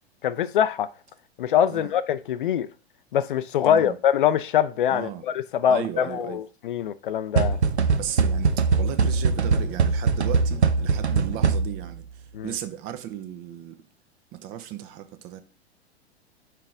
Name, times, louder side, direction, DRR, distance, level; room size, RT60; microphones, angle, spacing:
voice 1, 0.2-0.9 1.4-2.7 3.1-7.6 12.3-12.5, left 9 dB, 50° left, 0.4 m, -23 dB
voice 2, 3.6-4.0 4.9-5.2 5.7-6.4 7.8-13.8 14.3-15.4, right 11 dB, 25° right, 0.6 m, -36 dB
sound 1, 7.4-12.0, right 5 dB, 80° right, 0.6 m, -22 dB
5.8 x 4.8 x 3.5 m
figure-of-eight pair, 100°, 33 cm